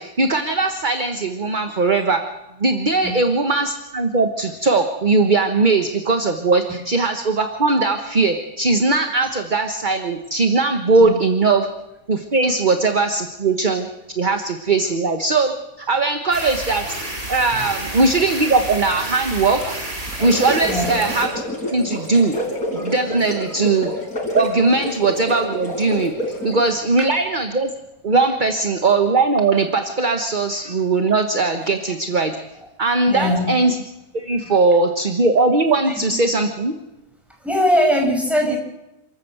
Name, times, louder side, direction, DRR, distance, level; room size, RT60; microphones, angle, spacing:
voice 1, 0.0-2.2 2.6-11.7 12.1-13.9 14.2-15.5 15.8-16.8 17.3-19.7 20.2-21.3 21.7-22.4 22.7-23.9 24.3-27.7 28.0-32.4 32.8-33.8 34.1-36.7, right 3 dB, 35° right, 6 dB, 1.4 m, -19 dB
sound 1, 16.3-21.2, right 1 dB, 65° right, 5.4 m, -30 dB
sound 2, 20.0-26.8, left 1 dB, 85° left, 5.5 m, -28 dB
voice 2, 33.1-33.5 34.5-34.6 37.4-38.6, equal, ahead, 1 dB, 6.0 m, -20 dB
28.5 x 14.0 x 7.9 m, 0.96 s
omnidirectional pair, 1.5 m